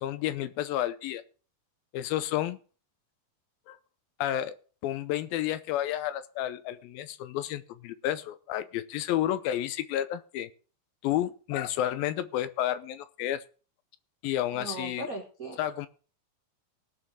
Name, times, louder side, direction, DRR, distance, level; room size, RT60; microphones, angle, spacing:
voice 1, 0.0-1.2 1.9-2.6 3.7-3.8 4.2-4.6 4.8-10.5 11.0-13.4 14.2-15.1 15.6-15.9, left 12 dB, 80° left, 13 dB, 2.4 m, -31 dB
voice 2, 14.5-15.6, right 2 dB, 90° right, 1 dB, 0.7 m, -38 dB
18.5 x 6.3 x 4.7 m, 0.38 s
omnidirectional pair, 4.4 m